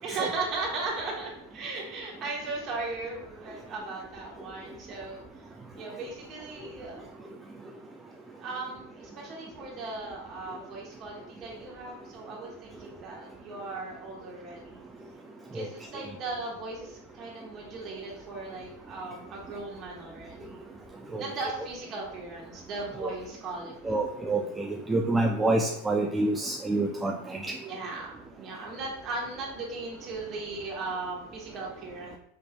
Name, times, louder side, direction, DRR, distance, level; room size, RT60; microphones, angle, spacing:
voice 1, 0.0-7.0 8.4-14.8 15.5-20.6 21.2-23.9 27.6-32.2, right 3 dB, 40° right, -2 dB, 1.4 m, -37 dB
voice 2, 23.9-27.5, right 2 dB, 10° right, 2 dB, 0.3 m, -27 dB
5.2 x 3.2 x 2.4 m, 0.74 s
supercardioid pair, 125°, 0 cm